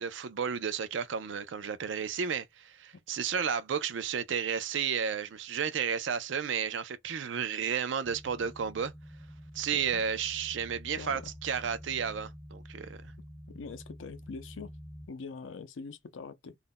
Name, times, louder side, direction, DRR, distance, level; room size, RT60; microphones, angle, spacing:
voice 1, 0.0-8.9 9.5-13.1, right 7 dB, 70° right, 0.4 m, -32 dB
sound 1, 8.0-15.1, equal, 10° left, 0.3 m, -48 dB
voice 2, 9.7-10.0 10.9-11.3 13.5-14.7 15.1-16.6, left 4 dB, 85° left, 0.5 m, -43 dB
2.4 x 2.1 x 3.6 m
head